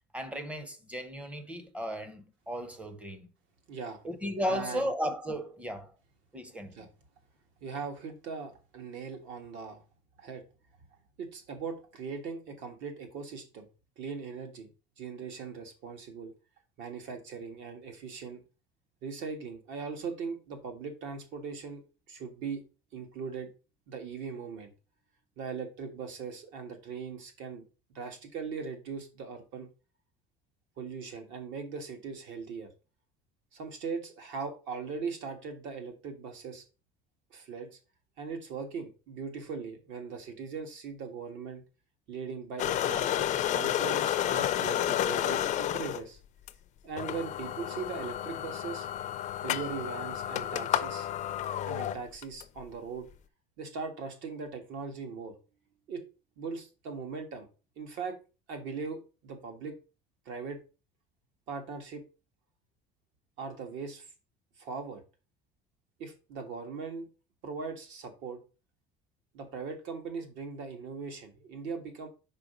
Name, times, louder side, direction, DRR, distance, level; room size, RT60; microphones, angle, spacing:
voice 1, 0.1-3.3 4.0-5.9 6.3-6.9, equal, 5° right, 0.6 m, -35 dB
voice 2, 3.7-4.0 4.4-4.9 6.7-6.9 7.6-9.8 10.2-10.4 11.2-13.7 14.0-14.7 15.0-16.3 16.8-18.4 19.0-21.8 22.1-22.6 22.9-23.5 23.9-24.7 25.4-27.6 27.9-29.7 30.8-32.7 33.5-36.6 37.3-37.8 38.2-41.6 42.1-46.2 46.8-48.9 49.4-51.1 51.7-53.1 53.6-55.4 55.9-56.0 56.4-57.5 57.8-58.2 58.5-59.8 60.2-60.6 61.5-62.0 63.4-64.1 64.6-65.0 66.0-67.1 67.4-68.4 69.3-72.1, right 5 dB, 65° right, 1.6 m, -39 dB
sound 1, 42.6-46.0 46.5-46.6 47.0-52.4, left 11 dB, 35° left, 0.4 m, -31 dB
5.0 x 4.5 x 5.0 m
cardioid pair, 165°, 21 cm